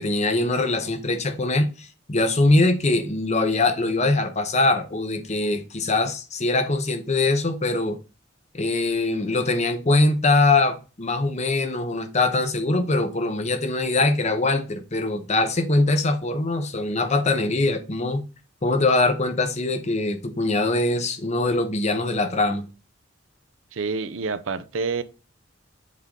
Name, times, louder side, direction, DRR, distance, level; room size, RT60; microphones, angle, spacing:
voice 1, 0.0-8.0 8.5-18.3 18.6-22.7, left 2 dB, 35° left, 0.9 m, -22 dB
voice 2, 23.7-25.0, right 4 dB, 85° right, 0.6 m, -27 dB
7.6 x 3.7 x 3.9 m
head